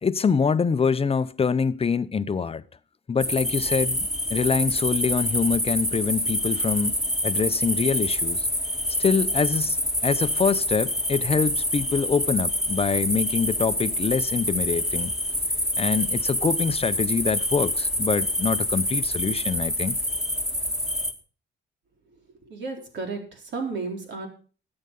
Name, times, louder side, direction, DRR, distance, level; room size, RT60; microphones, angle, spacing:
voice 1, 0.0-2.6 3.1-8.5 9.0-15.1 15.8-20.0, left 5 dB, 30° left, 0.7 m, -25 dB
sound 1, 3.2-21.1, equal, 5° right, 1.9 m, -26 dB
voice 2, 22.5-24.3, right 4 dB, 65° right, 4.1 m, -33 dB
13.5 x 8.9 x 5.3 m
cardioid pair, 90°, 20 cm